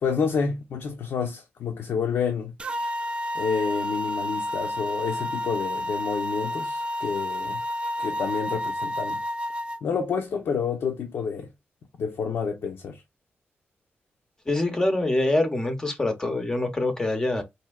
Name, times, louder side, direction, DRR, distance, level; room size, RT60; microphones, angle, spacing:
voice 1, 0.0-2.5 3.3-7.6 8.0-9.2 9.8-11.5 12.0-13.0, left 6 dB, 75° left, 0.6 m, -29 dB
sound 1, 2.6-9.8, left 1 dB, 25° right, 0.4 m, -30 dB
voice 2, 14.5-17.4, left 2 dB, 15° left, 0.7 m, -25 dB
4.2 x 2.7 x 2.2 m
wide cardioid pair, 165°, 4 cm